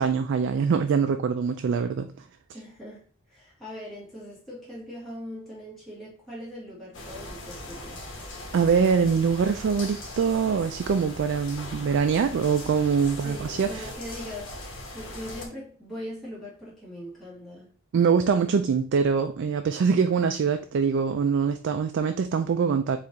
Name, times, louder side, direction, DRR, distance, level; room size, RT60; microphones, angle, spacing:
voice 1, 0.0-2.1 8.5-13.9 17.9-23.0, right 6 dB, 55° right, 0.3 m, -24 dB
voice 2, 2.5-8.0 13.2-17.7, equal, ahead, 1.5 m, -41 dB
sound 1, 6.9-15.5, left 1 dB, 60° left, 1.1 m, -40 dB
4.5 x 2.5 x 3.9 m
head